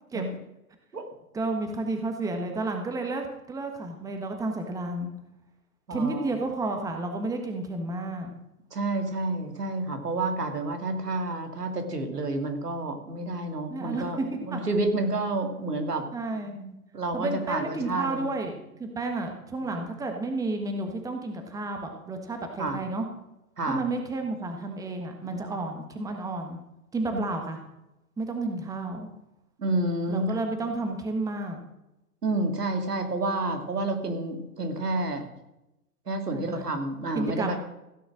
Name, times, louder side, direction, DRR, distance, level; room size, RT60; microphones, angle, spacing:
voice 1, 1.3-5.1 5.9-8.3 13.7-14.6 16.1-16.7 17.1-23.1 23.7-26.6 26.9-27.6 28.2-29.1 30.1-31.6 36.3-36.7 37.1-37.6, right 2 dB, 5° right, 4 dB, 1.4 m, -31 dB
voice 2, 5.9-6.3 8.7-16.1 16.9-18.3 22.6-22.8 23.6-23.8 27.1-27.2 29.6-30.3 32.2-35.3 36.1-37.6, right 2 dB, 90° right, 5 dB, 2.6 m, -29 dB
16.0 x 6.9 x 6.4 m, 0.91 s
hypercardioid pair, 125°, 46 cm